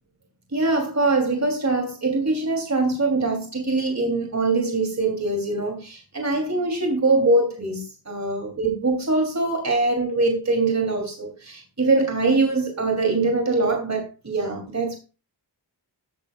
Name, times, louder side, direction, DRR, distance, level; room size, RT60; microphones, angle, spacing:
voice 1, 0.5-15.0, right 3 dB, 40° right, 2.8 m, -23 dB
16.0 x 10.0 x 2.3 m
wide cardioid pair, 75°, 43 cm